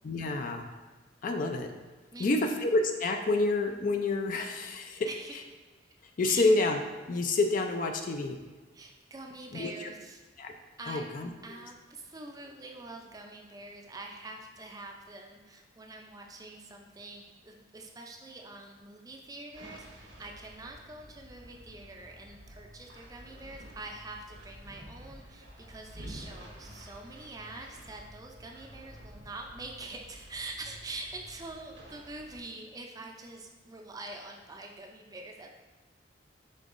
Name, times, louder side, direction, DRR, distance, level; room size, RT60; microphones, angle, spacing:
voice 1, 0.0-0.6 1.2-1.7 2.2-5.1 6.2-6.8 7.1-8.4 9.5-9.9 10.4-10.5 10.9-11.3, left 2 dB, 45° left, 5 dB, 0.4 m, -28 dB
voice 2, 2.1-2.5 5.1-5.3 5.8-5.9 6.3-6.5 8.7-10.2 10.8-11.1 11.4-35.5, right 2 dB, 20° right, 2 dB, 0.4 m, -45 dB
sound 1, 19.5-32.4, equal, 90° right, 1.0 m, -50 dB
5.3 x 3.8 x 2.5 m, 1.3 s
head